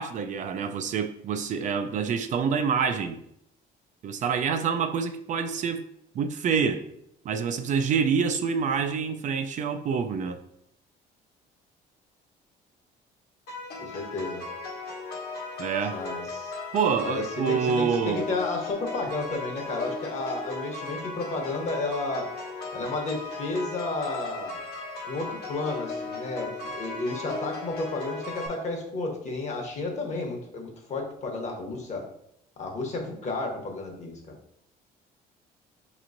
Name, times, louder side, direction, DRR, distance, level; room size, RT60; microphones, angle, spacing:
voice 1, 0.0-3.2 4.0-5.8 6.1-6.8 7.3-10.4 15.6-16.0 16.7-18.3, right 6 dB, 50° right, 0.4 m, -27 dB
sound 1, 13.5-28.5, left 3 dB, 70° left, 1.1 m, -36 dB
voice 2, 13.8-14.4 15.9-16.5 17.0-22.3 22.7-24.6 25.1-32.0 32.6-34.4, left 3 dB, 45° left, 1.0 m, -32 dB
5.1 x 3.0 x 2.5 m
cardioid pair, 110°, 17 cm